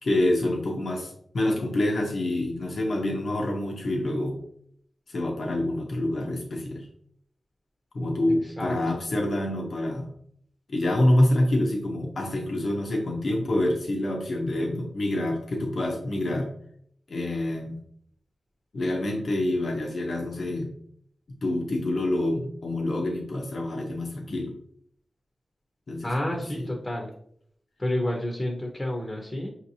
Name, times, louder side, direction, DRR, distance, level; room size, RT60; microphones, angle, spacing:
voice 1, 0.0-4.4 5.1-6.9 7.9-10.1 10.7-16.5 17.1-17.8 18.7-20.7 21.4-24.5 25.9-26.4, left 1 dB, 60° left, 0 dB, 0.8 m, -27 dB
voice 2, 8.3-9.0 26.0-27.1 27.8-29.5, left 1 dB, 25° left, 1 dB, 0.8 m, -30 dB
5.5 x 2.9 x 2.7 m, 0.66 s
wide cardioid pair, 85°, 0 cm